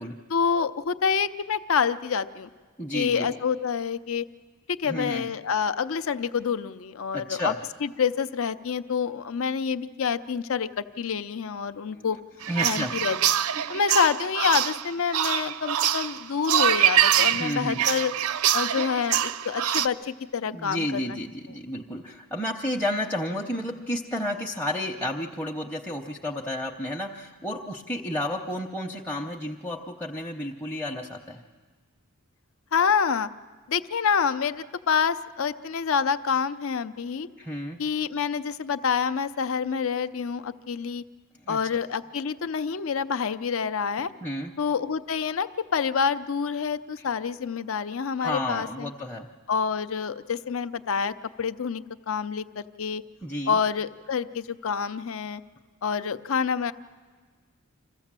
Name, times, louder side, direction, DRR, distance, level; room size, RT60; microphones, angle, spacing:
voice 1, 0.3-2.5 2.9-4.3 4.7-7.5 7.8-12.2 12.6-13.2 13.7-18.1 18.5-21.2 32.7-33.3 33.7-37.3 37.8-41.0 41.5-44.1 44.6-48.9 49.5-53.0 53.5-55.4 55.8-56.7, left 6 dB, 65° left, 12 dB, 0.5 m, -27 dB
voice 2, 2.8-3.3 4.8-5.3 7.1-7.6 11.9-12.1 12.5-12.9 17.3-17.8 20.5-31.4 37.4-37.8 41.4-41.6 44.2-44.5 47.0-47.1 48.2-49.3 53.2-53.6, left 1 dB, 10° left, -1 dB, 0.7 m, -31 dB
sound 1, 12.4-19.9, right 11 dB, 80° right, 0.5 m, -24 dB
26.5 x 15.0 x 7.4 m, 1.5 s
head